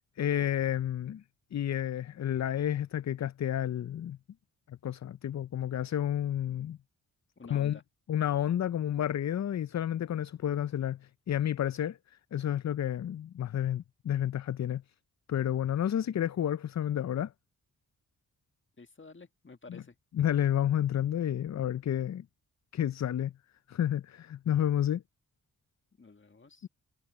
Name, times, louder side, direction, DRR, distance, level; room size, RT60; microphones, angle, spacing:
voice 1, 0.2-1.2 1.5-4.2 4.7-6.8 7.5-7.8 8.1-12.0 12.3-14.8 15.3-17.3 19.7-19.8 20.1-22.2 22.7-23.3 23.7-25.0 26.6-26.7, left 10 dB, 45° left, 0.5 m, -30 dB
voice 2, 7.4-7.8 18.8-20.0 26.0-26.7, left 4 dB, 30° left, 1.8 m, -51 dB
cardioid pair, 50°, 37 cm